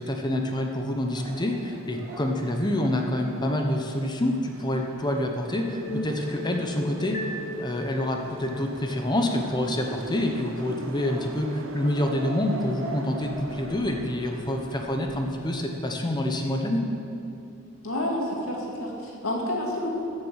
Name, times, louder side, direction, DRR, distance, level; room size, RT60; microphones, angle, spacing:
voice 1, 0.0-7.2 7.6-16.8, left 1 dB, 20° left, 3 dB, 0.8 m, -27 dB
sound 1, 1.1-3.7 9.1-10.0 11.0-13.7, right 1 dB, 40° right, 3.0 m, -41 dB
sound 2, 1.5-15.3, right 2 dB, 65° right, 0.8 m, -43 dB
sound 3, 5.5-8.8, equal, 40° left, 1.7 m, -36 dB
voice 2, 17.8-20.1, left 1 dB, 80° left, -2 dB, 2.3 m, -29 dB
14.5 x 6.4 x 6.4 m, 2.7 s
head